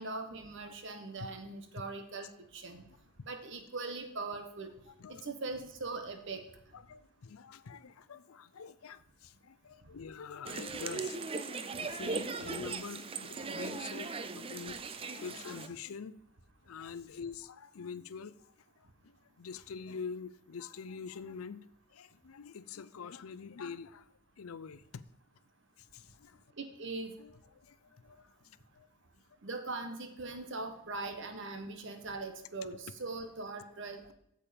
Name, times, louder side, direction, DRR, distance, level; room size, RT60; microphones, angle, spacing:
voice 1, 0.0-2.8 3.3-4.7 5.1-6.4 26.6-27.1 29.4-34.1, right 3 dB, 60° right, 1.2 m, -41 dB
voice 2, 4.9-5.3 6.7-16.2 16.6-21.7 21.9-24.1 24.4-25.0 25.8-26.4 27.2-28.9, left 5 dB, 80° left, 0.5 m, -46 dB
sound 1, 10.4-15.7, right 4 dB, 25° right, 0.5 m, -39 dB
8.5 x 7.4 x 5.1 m
head